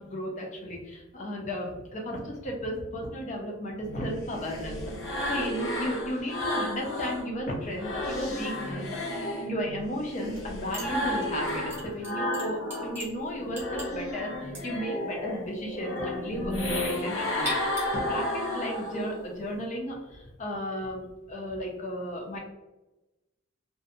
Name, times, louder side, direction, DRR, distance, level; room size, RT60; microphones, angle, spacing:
voice 1, 0.0-4.9 5.3-8.9 9.4-17.6 17.9-22.4, equal, 35° left, 0 dB, 0.5 m, -34 dB
sound 1, 3.8-7.2 7.6-13.0 13.4-19.2, left 1 dB, 65° left, 0.8 m, -32 dB
sound 2, 10.3-10.5 10.7-19.6, right 2 dB, 10° right, 0.7 m, -43 dB
2.6 x 2.1 x 2.5 m, 1.0 s
head